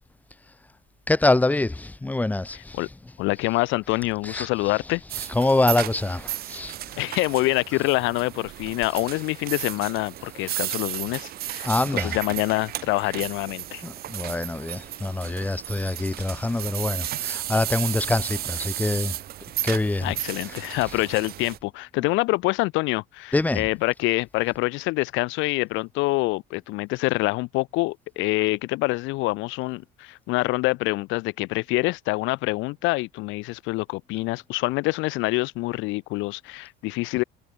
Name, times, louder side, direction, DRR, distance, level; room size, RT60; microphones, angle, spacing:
voice 1, 1.1-2.8 4.2-4.5 5.3-6.7 11.6-12.2 13.8-19.1 19.6-20.1 23.3-23.6, left 2 dB, 10° left, 3.1 m, -25 dB
voice 2, 2.5-2.9 3.2-5.0 7.0-13.8 20.0-37.2, left 22 dB, 80° left, 2.3 m, -26 dB
sound 1, 5.1-21.6, right 13 dB, 50° right, 2.9 m, -34 dB
cardioid pair, 160°, 20 cm